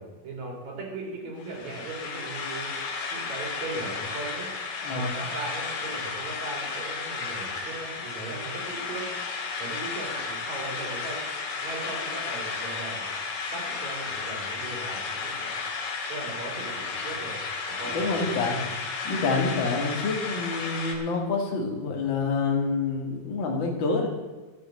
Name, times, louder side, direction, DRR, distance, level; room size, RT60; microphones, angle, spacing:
voice 1, 0.0-2.7 3.1-4.5 4.9-9.1 9.6-11.2 11.6-13.0 13.5-15.6 16.1-17.4 17.7-18.7, right 2 dB, 55° right, 0 dB, 4.3 m, -38 dB
sound 1, 1.4-21.0, left 4 dB, 70° left, 3.3 m, -33 dB
voice 2, 4.8-5.1 17.9-18.6 19.0-24.1, left 4 dB, 40° left, 1 dB, 2.2 m, -27 dB
12.0 x 8.1 x 7.6 m, 1.3 s
omnidirectional pair, 4.1 m